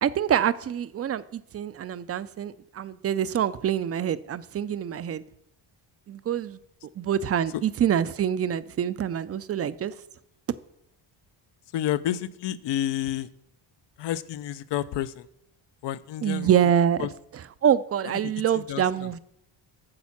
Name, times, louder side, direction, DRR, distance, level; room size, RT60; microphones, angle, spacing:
voice 1, 0.0-5.2 6.1-6.6 7.0-9.9 16.2-17.1 17.6-19.2, right 9 dB, 35° right, 0.4 m, -25 dB
voice 2, 11.7-13.3 14.0-15.3 15.8-16.5 17.0-17.1 18.2-19.2, left 12 dB, 65° left, 0.6 m, -30 dB
8.7 x 7.2 x 5.8 m
cardioid pair, 115°, 47 cm